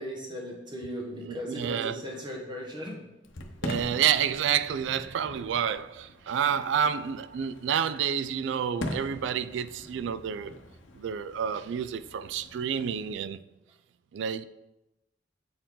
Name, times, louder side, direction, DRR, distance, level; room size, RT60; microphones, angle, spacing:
voice 1, 0.0-3.0, equal, 25° right, 1.3 m, -37 dB
voice 2, 1.2-2.0 3.6-10.6 11.0-13.4 14.1-14.4, right 8 dB, 70° right, 0.3 m, -29 dB
Fireworks, 3.2-13.1, left 1 dB, 85° left, 0.8 m, -42 dB
7.6 x 4.5 x 3.7 m
head